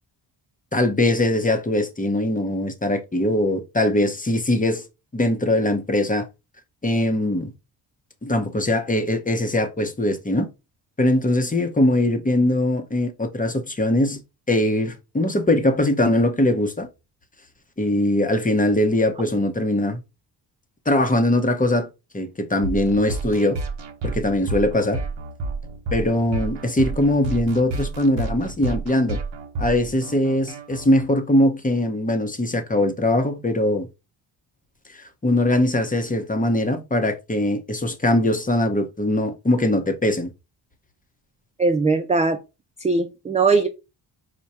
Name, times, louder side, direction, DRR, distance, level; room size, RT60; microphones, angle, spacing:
voice 1, 0.7-4.9 5.1-6.3 6.8-7.5 8.2-10.5 11.0-14.2 14.5-16.9 17.8-20.0 20.9-21.9 22.1-23.6 24.0-25.0 25.9-29.2 29.6-33.9 34.9-40.3, left 1 dB, 15° left, 0.9 m, -21 dB
sound 1, 22.6-31.0, right 3 dB, 65° right, 1.1 m, -30 dB
voice 2, 41.6-42.4 42.8-43.7, right 4 dB, 15° right, 0.3 m, -20 dB
4.7 x 2.2 x 4.2 m
cardioid pair, 85°, 47 cm